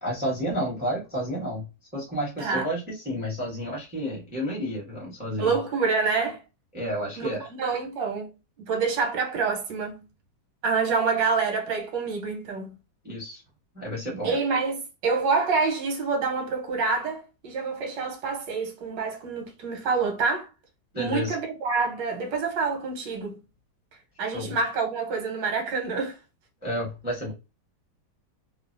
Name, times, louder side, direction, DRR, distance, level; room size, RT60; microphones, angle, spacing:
voice 1, 0.0-1.6 1.9-5.5 6.7-7.5 13.0-13.4 13.7-14.3 20.9-21.3 24.3-24.6 26.6-27.3, equal, 5° right, 0.9 m, -31 dB
voice 2, 5.4-6.4 7.2-8.3 8.6-10.0 10.6-12.8 14.2-20.5 20.9-23.4 24.2-26.2, right 4 dB, 85° right, 1.5 m, -27 dB
3.2 x 2.1 x 2.5 m
omnidirectional pair, 1.9 m